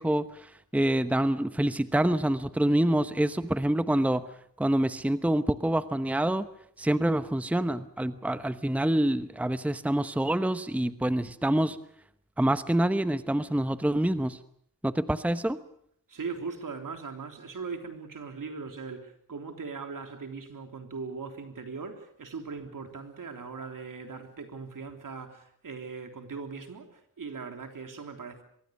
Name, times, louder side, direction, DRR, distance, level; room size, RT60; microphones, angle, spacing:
voice 1, 0.0-4.2 4.6-6.5 6.8-11.8 12.4-14.4 14.8-15.6, right 1 dB, 5° right, 0.9 m, -26 dB
voice 2, 16.1-28.4, right 4 dB, 70° right, 3.5 m, -39 dB
24.0 x 22.5 x 6.5 m
cardioid pair, 70°, 34 cm